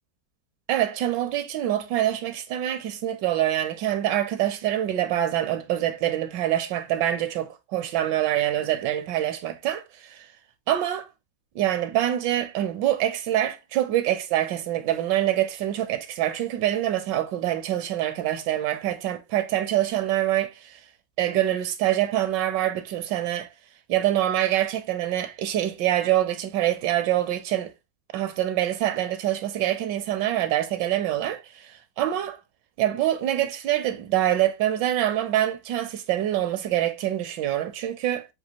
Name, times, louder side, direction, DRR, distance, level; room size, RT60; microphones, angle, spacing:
voice 1, 0.7-10.3 10.7-11.1 11.5-20.8 21.2-23.5 23.9-27.7 28.1-32.4 32.8-38.3, right 12 dB, 80° right, 1.2 m, -25 dB
6.1 x 2.7 x 2.8 m
omnidirectional pair, 2.0 m